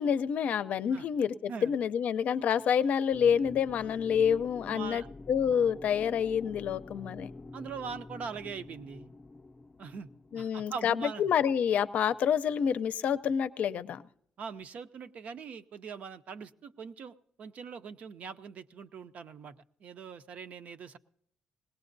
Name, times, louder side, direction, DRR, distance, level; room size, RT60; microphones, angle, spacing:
voice 1, 0.0-5.0 5.3-7.3 10.3-14.0, left 8 dB, 60° left, 12 dB, 0.5 m, -28 dB
sound 1, 3.1-11.6, left 2 dB, 20° left, 0.5 m, -47 dB
voice 2, 4.6-5.1 7.5-9.1 9.8-10.1 10.3-11.2 14.4-19.5 19.8-21.0, right 6 dB, 55° right, 11 dB, 0.6 m, -42 dB
20.0 x 18.0 x 2.6 m, 0.66 s
cardioid pair, 140°, 3 cm